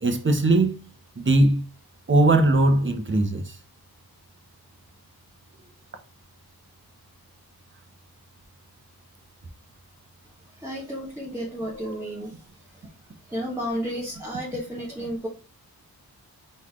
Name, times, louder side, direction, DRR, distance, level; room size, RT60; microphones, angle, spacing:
voice 1, 0.0-0.8 1.2-1.6 2.1-3.6, right 2 dB, 30° right, 0.8 m, -20 dB
voice 2, 10.6-12.3 13.3-15.3, equal, 5° right, 1.2 m, -32 dB
4.0 x 3.1 x 3.6 m
wide cardioid pair, 85°, 38 cm